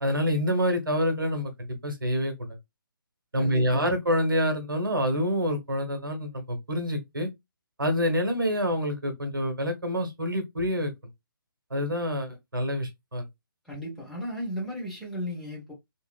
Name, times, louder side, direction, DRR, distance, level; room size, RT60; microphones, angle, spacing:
voice 1, 0.0-1.5 1.8-2.6 3.3-7.3 7.8-10.9 11.7-13.3, equal, 70° right, 1.1 m, -27 dB
voice 2, 3.4-3.9 13.6-15.7, equal, ahead, 0.8 m, -35 dB
2.8 x 2.7 x 2.3 m
figure-of-eight pair, 140°, 12 cm